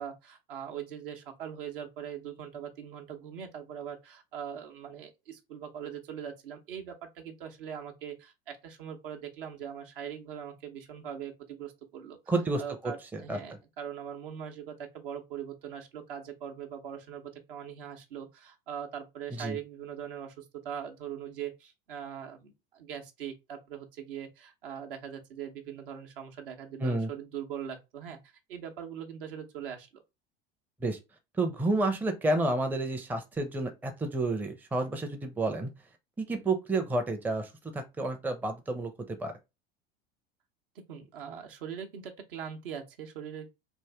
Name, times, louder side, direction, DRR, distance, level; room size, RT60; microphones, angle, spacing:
voice 1, 0.0-12.2 12.6-30.0 40.9-43.5, right 8 dB, 60° right, 0.9 m, -41 dB
voice 2, 12.3-12.6 13.1-13.4 19.4-19.6 26.8-27.1 30.8-31.0 31.4-35.7 36.2-37.5 37.7-39.3, right 2 dB, 5° right, 0.5 m, -30 dB
3.5 x 2.6 x 3.3 m
figure-of-eight pair, 75°, 30 cm